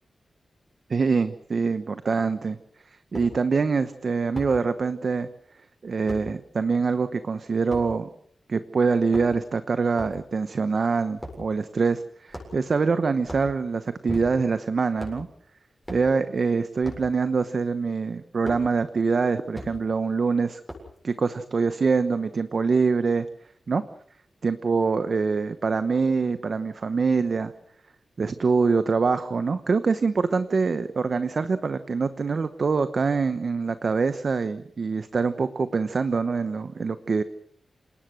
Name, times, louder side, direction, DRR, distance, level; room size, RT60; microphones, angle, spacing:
voice 1, 0.9-2.6 3.1-5.3 5.8-8.1 8.5-15.3 15.9-20.6 21.0-23.3 23.7-23.8 24.4-27.5 28.2-37.2, right 4 dB, 50° right, 11 dB, 1.0 m, -24 dB
sound 1, 3.1-3.3 4.4-4.6 6.1-6.3 7.7-7.9 9.0-9.5 9.9-10.2 11.2-11.4 12.3-12.7 13.2-13.5 14.1-14.5 15.0-15.2 15.8-16.1 16.8-17.1 18.5-18.6 19.5-19.7 20.7-21.0, equal, 5° right, 7.5 m, -37 dB
27.5 x 19.0 x 6.4 m, 0.63 s
wide cardioid pair, 135°, 0 cm